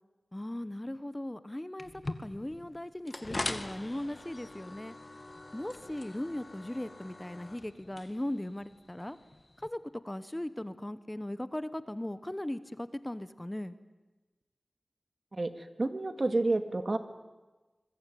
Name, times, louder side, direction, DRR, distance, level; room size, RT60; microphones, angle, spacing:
voice 1, 0.3-1.9 2.2-5.0 5.5-9.2 9.6-9.8 10.0-13.8, left 1 dB, 15° left, 14 dB, 1.2 m, -38 dB
sound 1, 1.8-9.7, left 2 dB, 40° left, 2.1 m, -43 dB
voice 2, 15.3-17.0, right 2 dB, 50° right, 9 dB, 2.2 m, -30 dB
25.5 x 21.5 x 9.4 m, 1.2 s
wide cardioid pair, 65°, 0 cm